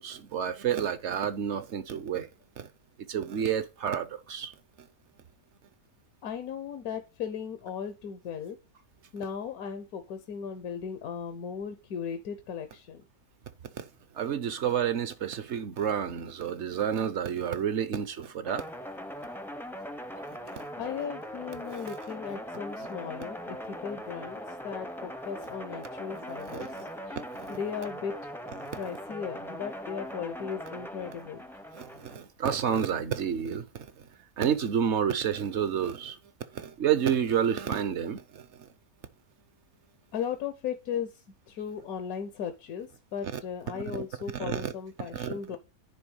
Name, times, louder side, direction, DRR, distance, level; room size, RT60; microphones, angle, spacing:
voice 1, 0.0-2.3 2.6-2.7 3.1-4.5 13.8-13.9 14.2-18.6 20.5-20.7 21.7-21.8 26.3-26.7 27.1-27.6 28.6-28.7 31.7-33.9 34.4-36.2 36.5-38.5 43.3-43.4 43.7-44.1 44.3-44.7 45.1-45.6, right 8 dB, 60° right, 0.9 m, -30 dB
voice 2, 6.2-8.6 9.1-13.0 20.8-26.9 27.5-28.1 28.7-31.4 40.1-45.6, left 7 dB, 80° left, 1.3 m, -37 dB
sound 1, 18.4-32.2, equal, 5° left, 0.4 m, -40 dB
9.9 x 3.4 x 6.3 m
omnidirectional pair, 1.5 m